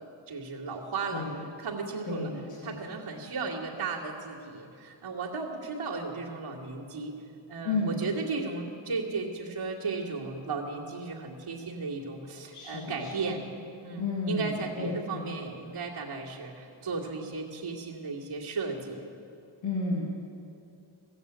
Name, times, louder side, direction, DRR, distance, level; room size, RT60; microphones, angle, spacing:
voice 1, 0.0-1.3 1.6-2.3 2.6-7.1 7.5-13.5 13.8-19.0, right 4 dB, 80° right, -10 dB, 2.2 m, -35 dB
voice 2, 2.1-2.8 7.6-8.0 12.5-13.1 14.0-15.3 19.6-20.1, left 3 dB, 90° left, -5 dB, 2.1 m, -32 dB
15.0 x 8.7 x 8.1 m, 2.6 s
wide cardioid pair, 105°, 49 cm